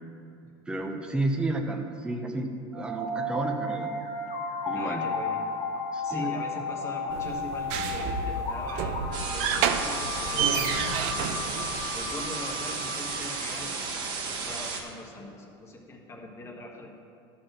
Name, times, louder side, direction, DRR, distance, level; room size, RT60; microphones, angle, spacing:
voice 1, 0.7-3.9 4.7-5.1 5.9-6.3, right 2 dB, 5° right, 3 dB, 0.7 m, -31 dB
sound 1, 2.7-13.7, left 3 dB, 50° left, 1.9 m, -34 dB
voice 2, 4.7-5.4 6.0-11.4 11.9-13.9 14.4-16.9, left 1 dB, 20° left, 0 dB, 1.3 m, -41 dB
sound 2, 7.1-12.2, right 7 dB, 55° right, 0.7 m, -30 dB
sound 3, 9.1-14.8, right 4 dB, 35° right, 1.3 m, -33 dB
12.5 x 4.4 x 6.4 m, 2.6 s
supercardioid pair, 155°, 13 cm